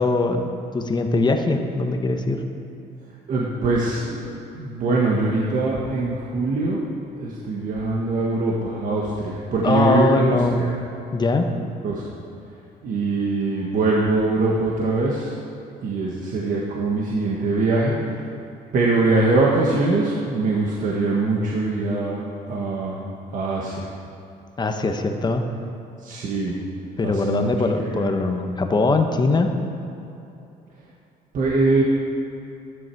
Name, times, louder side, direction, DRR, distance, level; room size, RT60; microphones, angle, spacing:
voice 1, 0.0-2.4 9.6-10.7 11.1-11.5 24.6-25.4 27.0-29.5, left 3 dB, 25° left, 5 dB, 1.0 m, -21 dB
voice 2, 3.3-4.3 4.5-6.8 7.2-10.7 11.8-12.0 12.8-15.3 15.8-18.2 18.7-23.0 23.3-23.9 26.0-26.6 27.0-27.5 27.8-28.1 31.3-31.8, right 3 dB, 50° right, -3 dB, 1.5 m, -22 dB
12.5 x 10.0 x 4.7 m, 2.9 s
cardioid pair, 110°, 17 cm